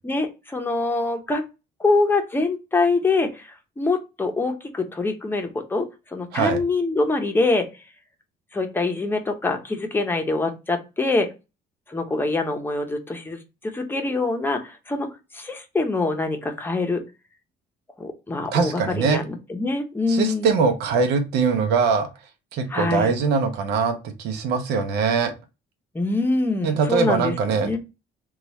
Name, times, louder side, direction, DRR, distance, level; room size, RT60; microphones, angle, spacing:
voice 1, 0.0-1.4 1.8-7.7 8.5-11.3 11.9-15.1 15.3-17.0 18.0-20.5 22.7-23.1 25.9-27.3 27.6-27.8, left 3 dB, 10° left, 4 dB, 0.7 m, -24 dB
voice 2, 18.5-19.2 20.1-22.1 22.5-25.3 26.6-27.7, right 5 dB, 80° right, 6 dB, 0.7 m, -22 dB
3.0 x 2.4 x 4.1 m, 0.27 s
cardioid pair, 110°, 17 cm